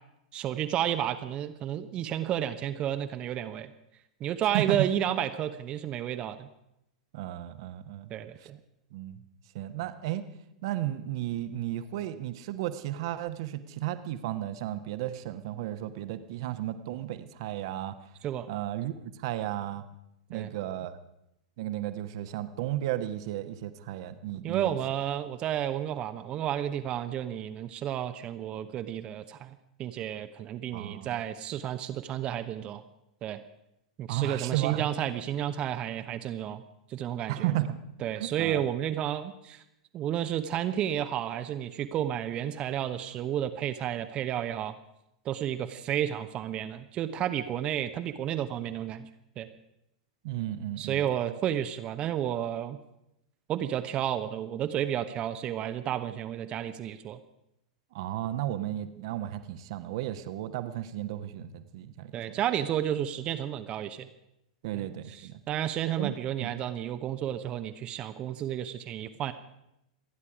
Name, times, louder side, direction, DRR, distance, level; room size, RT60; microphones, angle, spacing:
voice 1, 0.3-3.7 4.2-6.5 8.1-8.6 18.2-18.5 20.3-20.5 24.4-32.8 33.2-33.4 34.0-36.6 36.9-37.5 38.0-39.6 39.9-44.7 45.2-49.1 49.4-49.5 50.8-52.8 53.5-57.2 62.1-64.1 65.2-69.3, right 11 dB, 30° right, 9 dB, 0.9 m, -31 dB
voice 2, 4.5-4.9 7.1-8.1 8.4-8.5 8.9-9.2 9.5-10.2 10.6-17.9 18.5-18.9 19.2-19.8 20.3-21.0 21.6-24.8 30.7-31.2 34.1-34.9 37.3-37.8 38.2-38.6 50.2-51.1 57.9-62.4 64.6-65.4 66.0-66.5, right 13 dB, 50° right, 10 dB, 1.2 m, -34 dB
28.0 x 10.0 x 5.0 m, 0.82 s
figure-of-eight pair, 95°, 3 cm